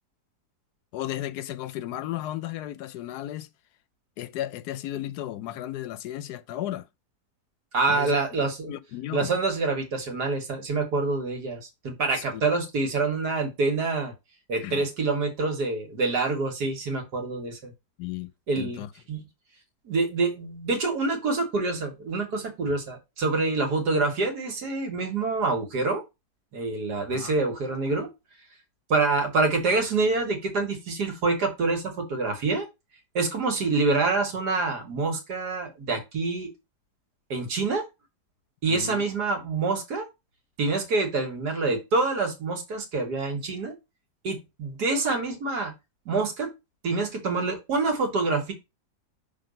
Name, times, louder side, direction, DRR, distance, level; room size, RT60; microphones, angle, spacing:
voice 1, 0.9-3.5 4.2-6.9 7.9-9.3 12.1-12.4 14.6-14.9 18.0-18.3 18.6-18.9 27.1-27.4 38.7-39.0, left 13 dB, 75° left, 1.1 m, -34 dB
voice 2, 7.7-8.7 9.1-14.1 14.5-17.7 18.5-18.8 19.1-19.2 19.9-26.0 26.5-28.1 28.9-32.7 33.1-36.5 37.3-37.8 38.6-40.1 40.6-43.7 44.2-45.7 46.1-46.5 46.8-48.5, right 3 dB, 70° right, 2.0 m, -26 dB
6.0 x 3.4 x 5.2 m
omnidirectional pair, 1.8 m